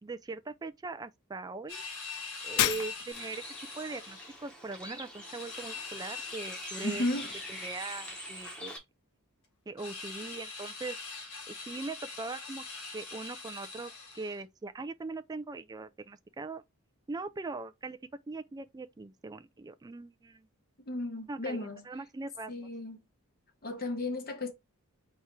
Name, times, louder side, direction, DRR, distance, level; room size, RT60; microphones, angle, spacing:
voice 1, 0.0-1.8 2.4-3.4 3.8-7.1 7.5-8.8 9.7-11.0 11.5-12.6 12.9-16.6 17.1-18.0 18.3-20.5 21.3-21.6 21.9-22.5, right 3 dB, 15° right, 0.3 m, -40 dB
sound 1, 1.7-4.4 5.2-8.6 9.8-14.4, left 4 dB, 70° left, 1.7 m, -43 dB
Shatter, 2.6-3.4, left 12 dB, 85° left, 0.4 m, -30 dB
Bird, 3.1-8.8, equal, 5° left, 1.1 m, -46 dB
voice 2, 6.8-7.3 20.8-21.8 22.5-23.0 23.6-24.5, left 1 dB, 45° left, 1.1 m, -34 dB
4.3 x 2.5 x 4.5 m
head